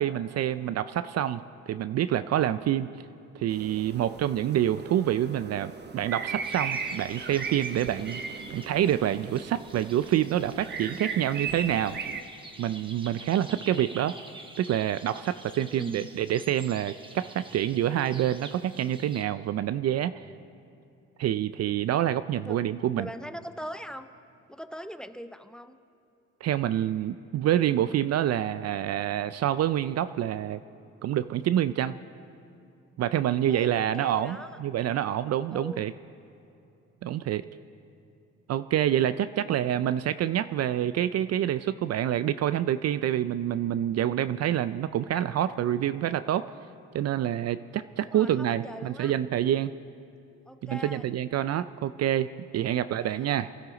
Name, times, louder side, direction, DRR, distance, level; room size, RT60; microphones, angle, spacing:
voice 1, 0.0-2.9 3.4-12.0 12.6-14.2 14.6-20.2 21.2-23.1 26.4-30.6 31.0-32.0 33.0-35.9 37.0-37.5 38.5-46.5 46.9-49.7 50.6-53.5, right 11 dB, 55° right, 13 dB, 0.4 m, -27 dB
sound 1, 3.5-12.2, right 5 dB, 35° right, 0.9 m, -37 dB
sound 2, 6.4-19.2, right 2 dB, 15° right, 1.2 m, -48 dB
voice 2, 15.6-16.2 22.4-22.6 23.0-24.1 24.5-25.8 33.5-34.5 35.5-35.9 48.0-49.1 50.5-51.1 53.0-53.4, equal, 5° left, 10 dB, 0.6 m, -41 dB
22.5 x 13.0 x 3.9 m, 2.7 s
cardioid pair, 90°, 30 cm